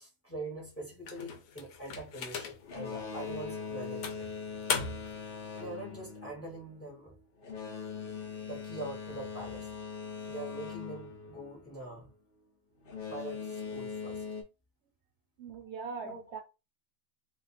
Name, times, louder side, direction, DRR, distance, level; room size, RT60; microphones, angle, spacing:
voice 1, 0.0-4.3 5.6-7.2 8.5-9.7 10.3-12.1 13.1-14.2 16.0-16.2, right 2 dB, 10° left, 1.0 m, -43 dB
sound 1, 1.1-2.8 3.3-3.5 4.0-5.2, left 6 dB, 90° left, 1.0 m, -37 dB
Boat Water vehicle, 2.6-12.0 12.8-14.4, left 5 dB, 50° left, 0.9 m, -41 dB
voice 2, 15.4-16.4, right 5 dB, 65° right, 0.7 m, -41 dB
2.5 x 2.4 x 4.1 m
omnidirectional pair, 1.4 m